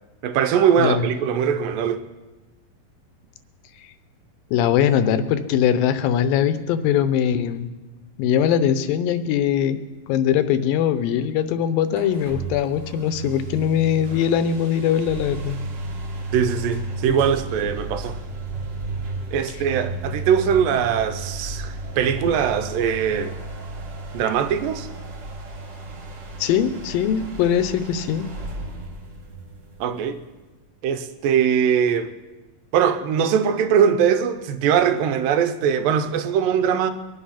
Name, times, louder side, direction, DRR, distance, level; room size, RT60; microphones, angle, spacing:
voice 1, 0.2-2.1 16.3-18.2 19.3-23.4 24.1-24.9 29.8-30.2 30.8-32.1 32.7-36.9, right 8 dB, 80° right, 2.5 m, -21 dB
voice 2, 4.5-7.7 8.2-9.8 10.1-15.6 26.4-28.3, left 9 dB, 85° left, 2.6 m, -21 dB
sound 1, 11.9-30.4, right 3 dB, 45° right, 1.6 m, -34 dB
23.0 x 8.4 x 5.8 m
omnidirectional pair, 4.1 m